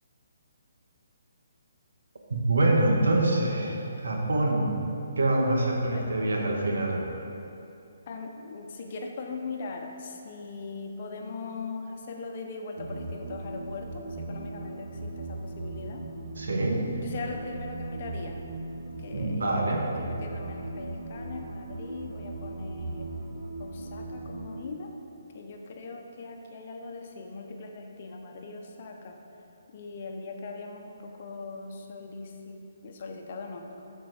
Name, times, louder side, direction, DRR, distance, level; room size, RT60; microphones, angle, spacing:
voice 1, 2.3-3.7 4.0-4.8 5.2-7.1 16.4-16.9 19.1-19.8, right 2 dB, 75° right, -1 dB, 1.5 m, -25 dB
voice 2, 5.8-6.3 8.1-16.1 17.0-18.4 18.8-23.1 23.6-24.9 25.3-29.2 29.7-33.7, left 3 dB, 50° left, 3 dB, 1.0 m, -40 dB
sound 1, 12.8-24.6, right 2 dB, 55° right, 1.7 m, -38 dB
12.5 x 4.6 x 4.5 m, 2.8 s
hypercardioid pair, 145°, 0 cm